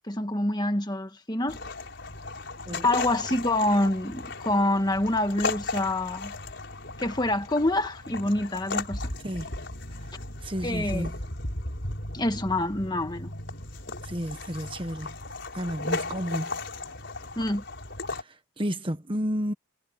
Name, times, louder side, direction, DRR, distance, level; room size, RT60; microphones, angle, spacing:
voice 1, 0.1-1.6 2.8-6.3 7.0-9.0 10.6-11.1 12.1-13.3 17.3-17.6, left 1 dB, 20° left, 1.6 m, -26 dB
sound 1, 1.5-18.2, left 2 dB, 55° left, 5.8 m, -36 dB
voice 2, 10.4-11.1 14.0-15.1 15.5-16.5 18.1-19.5, equal, 25° right, 1.2 m, -31 dB
head